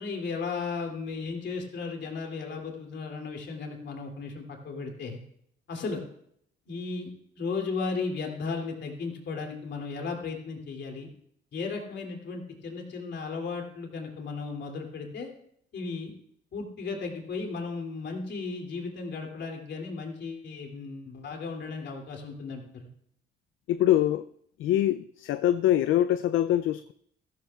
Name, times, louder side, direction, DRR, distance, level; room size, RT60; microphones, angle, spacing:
voice 1, 0.0-5.2 5.7-6.0 6.7-11.1 11.5-15.3 15.7-16.1 16.5-22.9, left 4 dB, 60° left, 2 dB, 2.8 m, -35 dB
voice 2, 23.7-24.2 24.6-26.9, left 12 dB, 80° left, 12 dB, 0.4 m, -24 dB
14.5 x 14.0 x 2.4 m, 0.68 s
cardioid pair, 90°, 20 cm